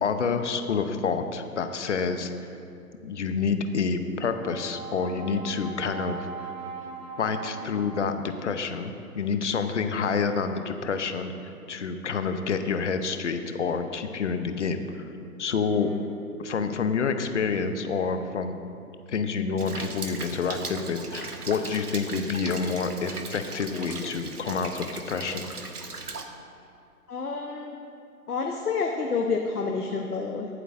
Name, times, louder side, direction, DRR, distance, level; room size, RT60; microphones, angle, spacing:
voice 1, 0.0-2.3 3.0-6.3 7.2-15.0 15.4-15.9 16.4-18.6 19.1-25.4, left 5 dB, 50° left, 8 dB, 0.8 m, -28 dB
Brass instrument, 4.2-8.6, right 5 dB, 35° right, 1.9 m, -40 dB
voice 2, 15.7-16.0 27.1-27.8 28.3-30.5, left 4 dB, 75° left, 2 dB, 1.0 m, -29 dB
Rain, 19.6-26.2, right 3 dB, 80° right, 1.1 m, -38 dB
21.5 x 7.9 x 2.6 m, 2.6 s
figure-of-eight pair, 130°, 45 cm